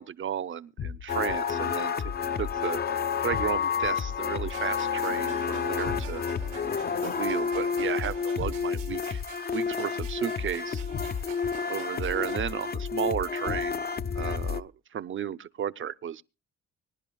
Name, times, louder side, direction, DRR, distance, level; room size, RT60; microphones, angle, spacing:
voice 1, 0.0-2.1 2.4-2.8 3.2-6.2 7.0-9.2 9.5-10.8 11.7-13.8 14.2-16.2, right 9 dB, 40° right, 0.6 m, -33 dB
sound 1, 0.8-1.4 3.3-3.9 5.8-6.4 8.4-9.0 10.9-11.5 13.5-14.0, left 7 dB, 65° left, 2.0 m, -36 dB
sound 2, 1.1-14.6, left 6 dB, 35° left, 0.5 m, -30 dB
sound 3, 4.5-12.5, right 11 dB, 85° right, 1.4 m, -46 dB
24.5 x 10.5 x 2.2 m
cardioid pair, 90°, 30 cm